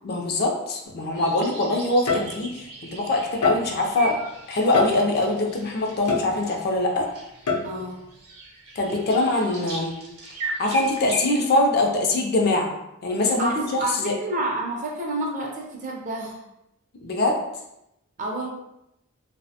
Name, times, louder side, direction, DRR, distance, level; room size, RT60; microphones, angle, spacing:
voice 1, 0.0-4.2 4.5-7.1 8.8-9.9 10.6-12.7 13.0-14.1 17.0-17.4, left 2 dB, 45° left, 1 dB, 0.4 m, -23 dB
sound 1, 0.9-1.1 2.1-2.7 3.4-4.0 4.7-5.4 6.1-6.8 7.5-8.0, left 4 dB, 90° left, 0.6 m, -26 dB
sound 2, 1.1-11.3, right 2 dB, 90° right, 0.6 m, -38 dB
voice 2, 7.6-8.0 13.4-16.4 18.2-18.5, right 1 dB, 35° right, -1 dB, 0.5 m, -29 dB
2.7 x 2.0 x 2.7 m, 0.86 s
head